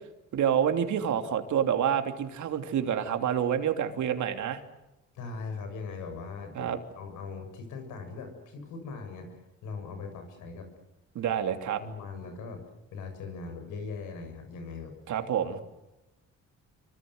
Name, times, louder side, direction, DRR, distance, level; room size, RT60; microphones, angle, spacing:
voice 1, 0.3-4.6 6.5-6.8 11.1-11.8 15.1-15.6, right 9 dB, 70° right, 7 dB, 3.1 m, -28 dB
voice 2, 5.1-10.7 11.8-12.6 12.9-14.9, left 4 dB, 90° left, 6 dB, 7.4 m, -40 dB
26.5 x 25.5 x 8.1 m, 0.96 s
cardioid pair, 90°, 30 cm